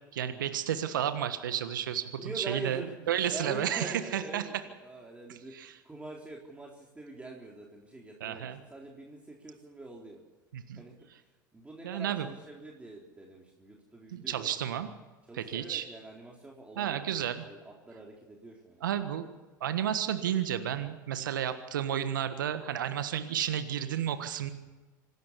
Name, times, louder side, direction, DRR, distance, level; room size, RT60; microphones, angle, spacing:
voice 1, 0.1-2.8 3.1-4.4 5.3-5.8 8.2-8.6 10.5-10.8 11.1-11.2 11.8-12.3 14.1-14.9 15.3-15.9 16.7-17.4 18.8-19.3 19.6-24.5, right 10 dB, 80° right, 10 dB, 1.5 m, -32 dB
voice 2, 2.2-4.5 4.8-10.2 10.8-10.9 11.5-14.5 15.3-17.0 17.2-18.9, right 2 dB, 10° right, -1 dB, 3.8 m, -44 dB
26.0 x 12.5 x 8.3 m, 1.2 s
hypercardioid pair, 80°, 11 cm